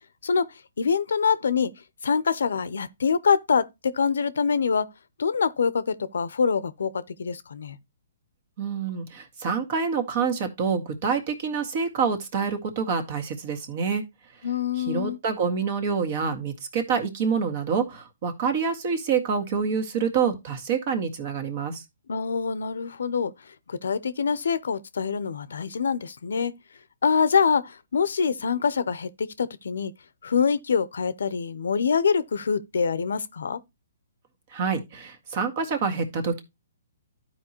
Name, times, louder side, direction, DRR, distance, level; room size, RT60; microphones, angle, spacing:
voice 1, 0.8-1.7 2.0-4.9 5.2-7.8 14.4-15.2 22.1-26.5 27.0-29.9 30.2-33.6, left 6 dB, 75° left, 0.6 m, -25 dB
voice 2, 8.6-14.0 14.8-21.8 34.5-36.4, right 6 dB, 45° right, 1.8 m, -27 dB
12.5 x 4.6 x 3.0 m
hypercardioid pair, 140°, 0 cm